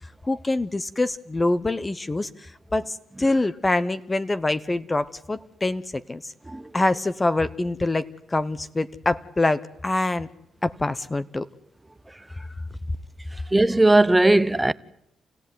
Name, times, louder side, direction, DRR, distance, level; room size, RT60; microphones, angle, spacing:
voice 1, 0.2-6.3 6.7-10.3 10.6-11.4 12.4-12.5, left 2 dB, 20° left, 1.0 m, -25 dB
voice 2, 13.5-14.7, right 2 dB, 15° right, 0.9 m, -18 dB
28.5 x 16.0 x 9.6 m
cardioid pair, 70°, 0 cm